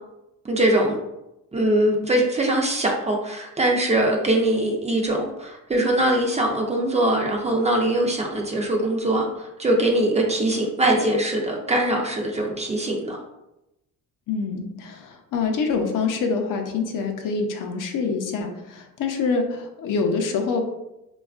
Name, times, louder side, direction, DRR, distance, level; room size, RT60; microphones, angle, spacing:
voice 1, 0.4-1.0 1.5-13.2, right 1 dB, 20° right, 0 dB, 0.4 m, -22 dB
voice 2, 14.3-20.6, left 4 dB, 70° left, 4 dB, 0.6 m, -25 dB
4.2 x 2.3 x 2.3 m, 0.91 s
cardioid pair, 135°, 34 cm